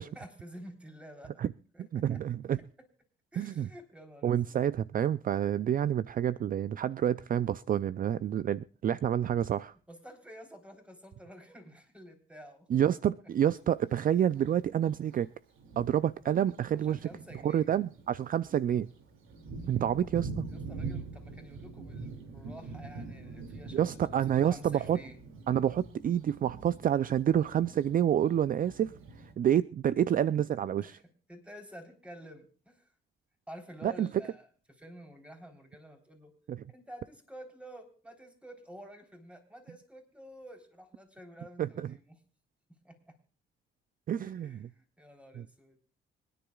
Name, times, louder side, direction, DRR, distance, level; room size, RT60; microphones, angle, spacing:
voice 1, 0.2-1.4 1.7-2.2 3.3-4.5 9.9-12.7 16.9-17.7 20.5-25.2 30.8-31.0 31.3-32.9 33.5-34.5 34.8-36.3 36.7-42.2 42.7-43.2 44.2-45.8, equal, 5° right, 3.7 m, -50 dB
voice 2, 1.9-2.6 3.4-3.7 4.2-9.7 12.7-15.3 15.8-17.0 17.4-18.9 19.7-20.4 23.7-25.0 25.5-31.0 33.8-34.1 36.5-36.6 41.6-41.9 44.1-44.7 45.4-45.5, right 10 dB, 45° right, 0.4 m, -28 dB
Thunder, 13.3-13.5 14.4-14.5 15.1-15.2 15.6-29.3, right 3 dB, 90° right, 2.5 m, -44 dB
25.5 x 10.0 x 2.4 m
cardioid pair, 90°, 20 cm